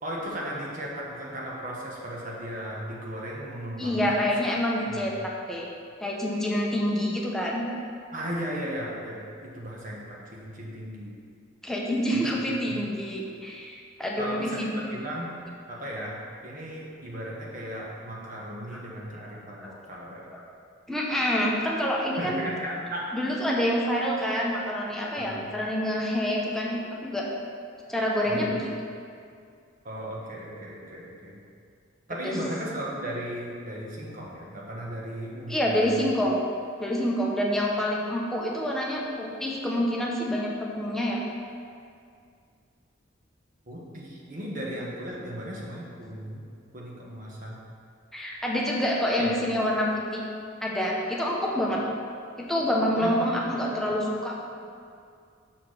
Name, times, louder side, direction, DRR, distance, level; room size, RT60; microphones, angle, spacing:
voice 1, 0.0-4.2 4.9-5.1 8.1-11.1 12.1-12.3 12.7-12.9 14.2-15.4 15.7-20.3 22.2-23.1 25.2-25.5 28.2-28.5 29.8-31.4 32.1-36.1 43.7-46.4 46.7-47.6 49.2-49.3 51.7-51.8 53.0-53.6, equal, 45° right, -4 dB, 1.1 m, -36 dB
voice 2, 3.8-5.7 6.0-7.7 11.6-14.7 18.7-18.8 19.5-19.7 20.3-20.4 20.9-22.4 23.1-27.3 27.9-28.7 32.2-32.4 35.5-36.4 36.8-41.2 48.1-50.2 50.6-51.8 52.4-54.4, equal, ahead, -3 dB, 0.8 m, -27 dB
5.9 x 4.5 x 6.3 m, 2.3 s
head